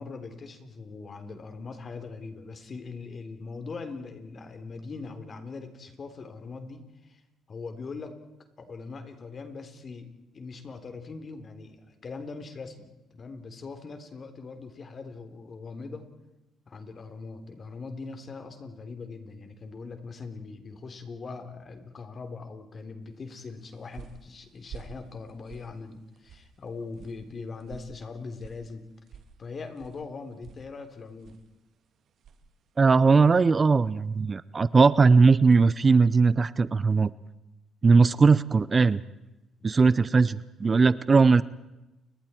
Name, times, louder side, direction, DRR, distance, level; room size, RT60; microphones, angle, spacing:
voice 1, 0.0-7.2 7.5-8.2 8.6-12.9 13.1-16.1 16.7-28.9 29.4-31.4 39.6-39.7, left 4 dB, 45° left, 7 dB, 3.6 m, -41 dB
sound 1, 23.4-33.5, right 6 dB, 65° right, 2.3 m, -51 dB
voice 2, 32.8-37.1 37.8-39.0 39.6-41.4, right 4 dB, 35° right, 18 dB, 0.7 m, -19 dB
30.0 x 23.0 x 4.5 m, 0.97 s
cardioid pair, 80°, 0 cm